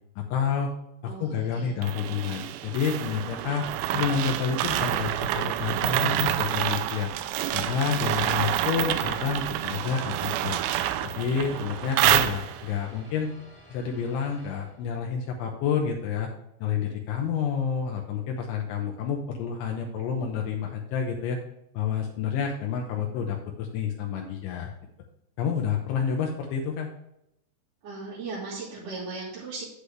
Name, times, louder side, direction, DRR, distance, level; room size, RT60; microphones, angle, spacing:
voice 1, 0.2-0.7 1.0-3.6 3.9-7.1 7.5-10.6 11.0-13.3 13.7-16.3 16.6-21.4 21.7-24.7 25.4-26.9, left 7 dB, 80° left, 1 dB, 3.3 m, -29 dB
voice 2, 1.0-1.7 27.8-29.6, right 3 dB, 50° right, -7 dB, 2.9 m, -37 dB
sound 1, 1.8-12.8, right 12 dB, 85° right, 2.8 m, -28 dB
sound 2, 5.7-15.2, equal, 15° right, 2.5 m, -52 dB
8.3 x 8.2 x 3.4 m, 0.81 s
omnidirectional pair, 5.5 m